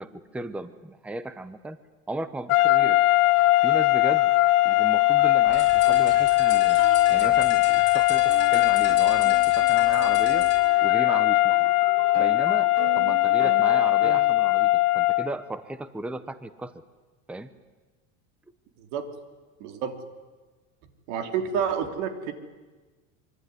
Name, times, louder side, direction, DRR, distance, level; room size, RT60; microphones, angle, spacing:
voice 1, 0.0-1.8 2.1-3.0 3.6-4.3 4.6-6.8 7.1-10.5 10.8-11.7 12.1-16.7 17.3-17.5, right 2 dB, 5° right, 13 dB, 0.8 m, -35 dB
sound 1, 2.5-15.3, left 18 dB, 90° left, 1.3 m, -20 dB
sound 2, 2.6-14.4, right 8 dB, 35° right, 2.0 m, -42 dB
sound 3, 5.5-10.6, left 8 dB, 30° left, 7.0 m, -39 dB
voice 2, 18.8-19.1 19.6-20.0 21.1-22.3, right 7 dB, 65° right, 6 dB, 3.7 m, -29 dB
25.0 x 24.5 x 9.7 m, 1.3 s
supercardioid pair, 150°, 41 cm